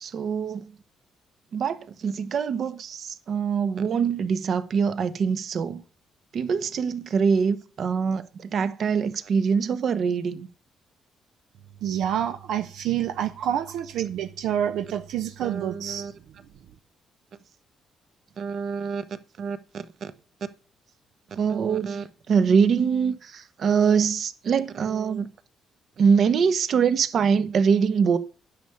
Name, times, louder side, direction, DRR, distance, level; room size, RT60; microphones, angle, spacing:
voice 1, 0.0-0.7 1.5-5.8 6.3-10.5 13.4-13.5 15.4-16.1 18.4-19.0 19.4-20.1 21.3-25.3 26.0-28.2, right 6 dB, 60° right, 1.2 m, -24 dB
voice 2, 11.8-16.1, right 10 dB, 80° right, 0.8 m, -28 dB
10.0 x 6.8 x 7.0 m
cardioid pair, 90°, 0 cm